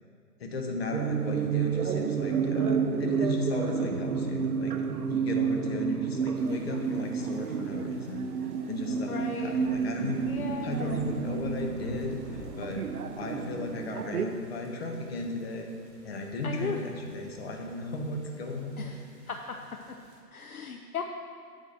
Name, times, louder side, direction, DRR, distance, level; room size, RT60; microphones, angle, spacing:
voice 1, 0.4-4.7 5.1-8.3 8.6-10.3 10.6-12.9 13.1-15.7 16.0-18.9, left 2 dB, 40° left, 2 dB, 0.9 m, -35 dB
sound 1, 0.9-14.2, right 6 dB, 65° right, 0.6 m, -30 dB
sound 2, 6.4-20.2, right 3 dB, 45° right, 1.6 m, -48 dB
voice 2, 9.1-9.5 10.3-10.8 16.4-16.8 18.8-18.9 19.3-19.6 20.3-21.0, left 6 dB, 65° left, 3 dB, 0.6 m, -36 dB
8.0 x 3.9 x 6.2 m, 2.4 s
figure-of-eight pair, 130°, 48 cm